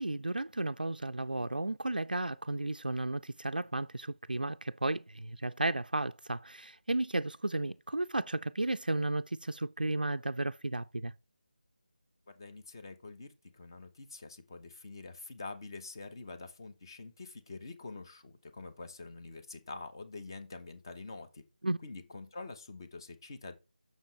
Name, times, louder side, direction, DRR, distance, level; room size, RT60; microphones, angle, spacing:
voice 1, 0.0-11.1 21.6-21.8, right 2 dB, 75° right, 0.4 m, -33 dB
voice 2, 12.3-21.4 21.8-23.6, left 3 dB, 25° left, 0.8 m, -46 dB
7.3 x 6.2 x 3.2 m
figure-of-eight pair, 160°, 5 cm